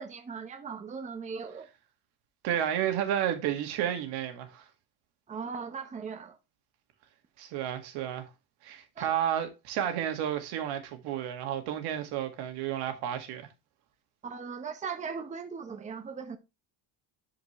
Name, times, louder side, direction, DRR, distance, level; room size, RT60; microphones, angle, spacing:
voice 1, 0.0-1.7 5.3-6.4 9.0-9.1 14.2-16.4, right 5 dB, 20° right, 1.0 m, -38 dB
voice 2, 2.4-4.6 7.4-8.3 8.6-13.5, right 10 dB, 75° right, 2.0 m, -31 dB
11.0 x 5.0 x 3.2 m
cardioid pair, 135°, 40 cm